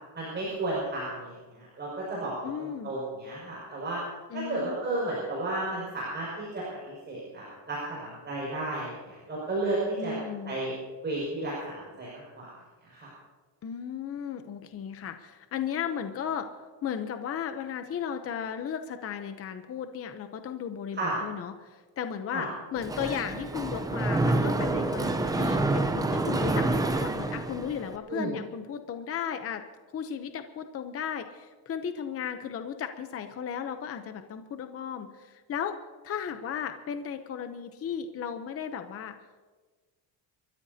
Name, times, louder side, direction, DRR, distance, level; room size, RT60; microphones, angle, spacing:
voice 1, 0.1-2.3 2.6-4.0 4.3-10.7 11.0-12.5 12.8-13.1 20.9-21.1 22.3-22.5 28.1-28.3, right 2 dB, 25° right, -5 dB, 5.9 m, -33 dB
voice 2, 2.4-2.9 4.3-4.8 10.0-10.5 13.6-16.5 16.8-29.6 29.9-35.8 36.0-39.1, left 8 dB, 30° left, 8 dB, 0.7 m, -35 dB
Mechanisms, 22.8-28.0, right 2 dB, 10° right, 0.6 m, -27 dB
29.5 x 14.5 x 2.8 m, 1.4 s
cardioid pair, 165°, 45 cm